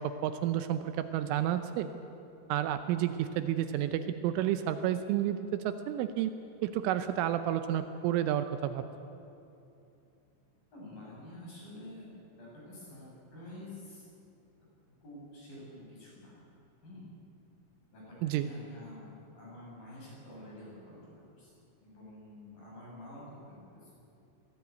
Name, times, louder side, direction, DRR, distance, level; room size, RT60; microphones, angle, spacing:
voice 1, 0.0-1.9 2.5-6.3 6.6-8.8 18.2-18.5, right 11 dB, 80° right, 9 dB, 3.1 m, -31 dB
voice 2, 10.7-14.0 15.0-16.4 16.8-17.1 17.9-23.9, left 1 dB, 45° left, -5 dB, 8.7 m, -49 dB
22.0 x 16.0 x 9.4 m, 2.7 s
omnidirectional pair, 5.9 m